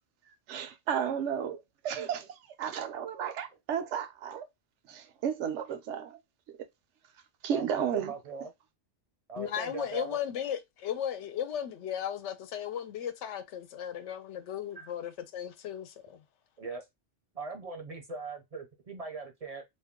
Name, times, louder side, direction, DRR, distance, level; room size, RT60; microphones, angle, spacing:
voice 1, 0.5-4.4 4.9-6.2 7.4-8.1, right 8 dB, 85° right, 0.9 m, -33 dB
voice 2, 7.5-8.5 9.3-10.2 14.7-14.9 16.6-16.8 17.3-19.6, right 4 dB, 45° right, 0.5 m, -40 dB
voice 3, 9.4-16.2, left 9 dB, 80° left, 0.9 m, -36 dB
2.5 x 2.2 x 3.5 m
omnidirectional pair, 1.2 m